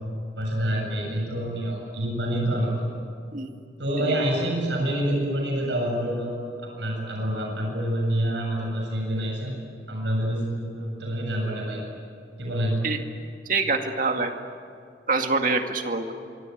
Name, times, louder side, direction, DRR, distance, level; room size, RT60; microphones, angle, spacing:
voice 1, 0.4-2.9 3.8-6.3 6.6-9.5 9.9-11.8 12.4-12.8, right 1 dB, 85° right, -1 dB, 7.8 m, -27 dB
voice 2, 13.5-14.3 15.1-16.1, right 3 dB, 50° right, 5 dB, 2.2 m, -25 dB
25.5 x 23.5 x 9.4 m, 2.4 s
head